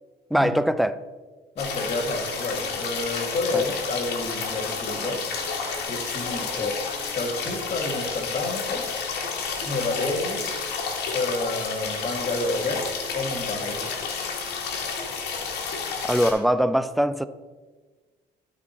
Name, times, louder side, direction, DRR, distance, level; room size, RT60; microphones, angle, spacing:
voice 1, 0.3-1.0 3.5-3.6 16.0-17.3, equal, ahead, 13 dB, 0.3 m, -22 dB
voice 2, 1.5-5.2 5.9-6.8 7.1-8.9 9.6-10.4 11.1-13.9, left 2 dB, 40° left, 3 dB, 1.6 m, -29 dB
sound 1, 1.6-16.3, left 5 dB, 75° left, 1.6 m, -31 dB
12.0 x 4.5 x 4.2 m, 1.3 s
cardioid pair, 110°, 17 cm